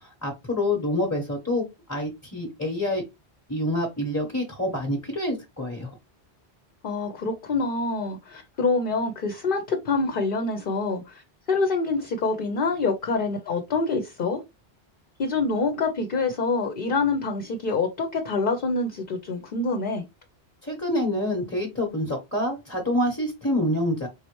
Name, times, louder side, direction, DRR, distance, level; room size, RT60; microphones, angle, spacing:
voice 1, 0.0-3.0 3.5-5.9 20.6-24.1, left 1 dB, 15° left, 1.0 m, -27 dB
voice 2, 6.8-11.2 11.5-14.4 15.2-20.0, left 3 dB, 55° left, 0.9 m, -26 dB
4.3 x 3.6 x 3.1 m
omnidirectional pair, 1.1 m